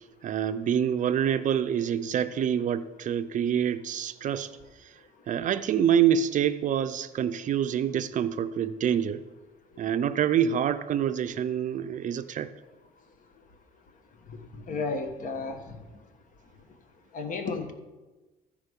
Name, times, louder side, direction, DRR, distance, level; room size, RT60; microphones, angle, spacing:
voice 1, 0.2-4.5 5.3-9.2 9.8-12.5, right 9 dB, 50° right, 12 dB, 0.5 m, -26 dB
voice 2, 14.7-15.6 17.1-17.7, left 3 dB, 50° left, 6 dB, 1.3 m, -32 dB
14.5 x 5.0 x 5.2 m, 1.2 s
cardioid pair, 110°, 17 cm